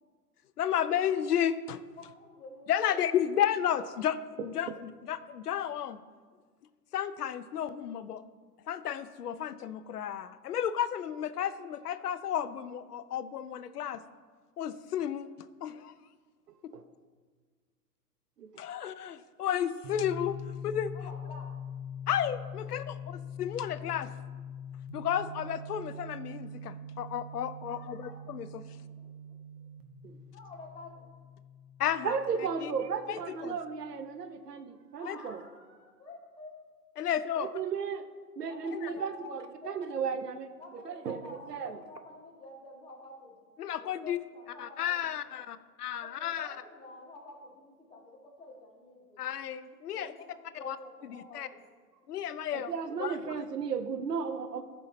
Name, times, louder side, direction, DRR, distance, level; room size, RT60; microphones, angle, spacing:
voice 1, 0.6-1.8 2.7-6.0 6.9-8.2 8.7-14.0 14.6-15.3 15.6-15.9 18.6-20.4 20.6-20.9 22.1-24.1 24.9-28.6 31.8-32.2 32.6-32.7 33.1-33.5 35.1-35.2 37.0-37.5 38.7-38.9 43.6-44.2 44.6-46.5 49.2-50.1 50.6-50.8 51.1-51.5 52.1-52.7 53.0-53.3, left 9 dB, 70° left, 13 dB, 0.6 m, -32 dB
voice 2, 2.0-3.0 18.7-18.8 20.9-21.5 22.7-23.1 27.6-28.2 28.7-29.7 30.3-31.1 35.0-36.6 38.5-39.8 40.6-43.4 43.8-45.4 46.0-49.2 49.9-51.6 52.0-52.2, left 2 dB, 10° left, -3 dB, 1.8 m, -50 dB
sound 1, 19.8-33.5, left 3 dB, 20° right, 0.9 m, -43 dB
voice 3, 32.0-35.4 37.4-38.1 38.4-40.5 40.8-41.8 52.5-54.6, right 6 dB, 75° right, 9 dB, 1.0 m, -35 dB
14.0 x 5.6 x 4.0 m, 1.5 s
hypercardioid pair, 130°, 48 cm